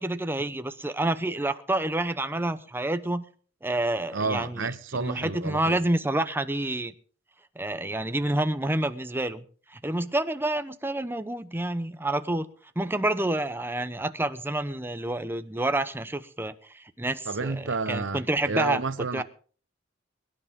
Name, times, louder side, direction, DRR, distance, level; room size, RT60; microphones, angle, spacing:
voice 1, 0.0-3.2 3.6-6.9 7.6-9.4 9.7-12.5 12.8-17.6 17.9-18.8 19.1-19.2, right 1 dB, 10° right, 0.8 m, -28 dB
voice 2, 4.1-5.8 17.3-19.2, right 3 dB, 75° right, 1.0 m, -30 dB
23.5 x 11.0 x 3.7 m
head